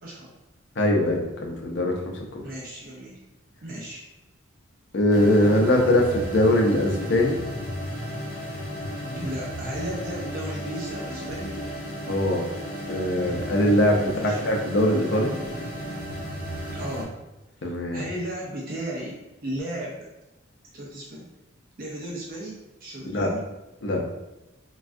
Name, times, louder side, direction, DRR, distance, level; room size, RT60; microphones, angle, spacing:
voice 1, 0.0-0.3 2.4-3.2 3.6-4.0 9.1-11.6 14.0-14.4 16.7-17.1 17.6-20.1 20.7-21.3 21.8-23.4, right 1 dB, 45° right, -3 dB, 0.5 m, -35 dB
voice 2, 0.8-2.4 4.9-7.4 12.1-12.4 12.9-15.3 17.6-18.0 23.1-23.3 23.8-24.0, left 1 dB, 60° left, 1 dB, 0.5 m, -22 dB
sound 1, 5.1-17.0, equal, 45° left, 0.9 m, -34 dB
3.3 x 2.3 x 2.5 m, 0.99 s
head